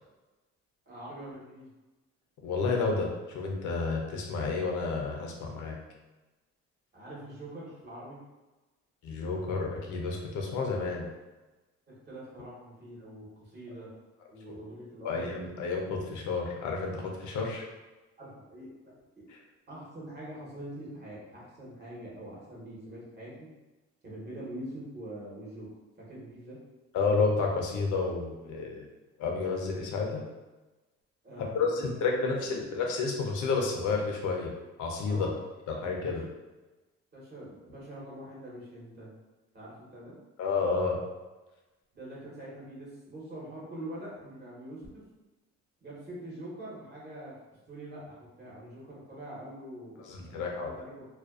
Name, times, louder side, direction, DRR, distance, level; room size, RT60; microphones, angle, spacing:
voice 1, 0.9-1.7 6.9-8.2 11.9-13.9 14.3-15.2 18.2-18.7 19.2-19.3 19.7-23.5 24.0-25.7 26.0-26.6 31.2-31.8 32.3-32.6 35.1-35.4 36.0-36.2 37.1-39.1 39.5-40.1 41.9-45.0 45.8-47.3 47.7-50.9, right 1 dB, 35° right, -6 dB, 1.0 m, -44 dB
voice 2, 2.4-5.8 9.0-11.1 15.0-17.7 19.3-19.4 26.9-28.9 29.2-30.2 31.4-34.5 34.8-35.3 35.7-36.2 40.4-41.0 50.1-50.7, left 4 dB, 75° left, 0 dB, 0.6 m, -30 dB
2.4 x 2.2 x 2.3 m, 1.1 s
cardioid pair, 90°, 30 cm